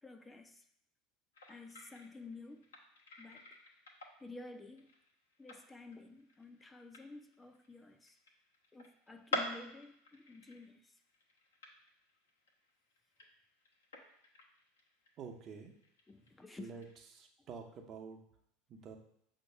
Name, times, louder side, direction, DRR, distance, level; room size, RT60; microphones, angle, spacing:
voice 1, 0.0-0.7 1.5-2.7 3.2-3.6 4.2-4.9 5.4-8.2 8.7-11.0 16.1-16.7 17.4-17.5, left 3 dB, 15° left, 6 dB, 0.6 m, -52 dB
sound 1, 1.3-17.0, left 2 dB, 80° left, 1.1 m, -49 dB
voice 2, 15.2-15.7 16.6-16.8 17.1-18.2 18.7-19.0, right 5 dB, 40° right, 4 dB, 0.9 m, -48 dB
6.2 x 2.9 x 5.6 m, 0.72 s
hypercardioid pair, 80°, 0 cm